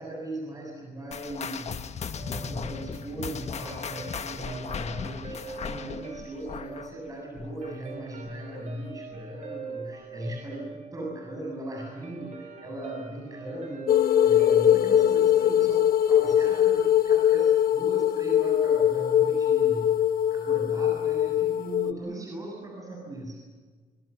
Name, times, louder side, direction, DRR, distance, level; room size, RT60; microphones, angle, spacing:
voice 1, 0.0-1.9 2.2-14.0 14.2-23.4, right 1 dB, 25° right, 0 dB, 7.5 m, -38 dB
sound 1, 1.1-8.0 8.2-8.6 9.1-9.2 10.0-10.1, left 6 dB, 45° left, 1.5 m, -37 dB
Guitar, 2.1-16.7, right 5 dB, 50° right, 4.9 m, -45 dB
sound 2, 13.9-21.9, left 10 dB, 75° left, 1.2 m, -22 dB
27.0 x 25.0 x 7.0 m, 1.5 s
cardioid pair, 115°, 15 cm